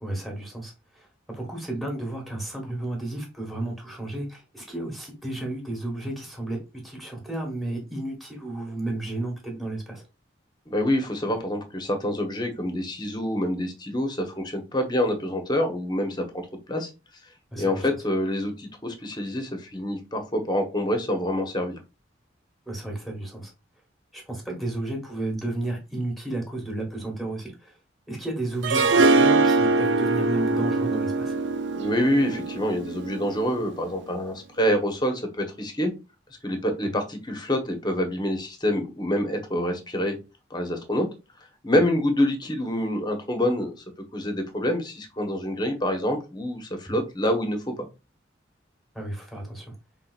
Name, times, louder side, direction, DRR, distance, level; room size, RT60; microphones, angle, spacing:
voice 1, 0.0-10.0 17.5-17.9 22.6-23.5 24.1-27.8 28.1-31.3 46.8-47.0 48.9-49.7, right 2 dB, ahead, 1.5 m, -32 dB
voice 2, 10.7-16.3 16.7-16.9 17.6-21.8 31.7-35.9 36.4-40.2 40.5-41.1 41.4-43.7 44.1-47.9, left 1 dB, 25° left, 1.0 m, -26 dB
Harp, 28.6-33.7, right 3 dB, 70° right, 0.5 m, -22 dB
5.7 x 3.7 x 2.4 m
head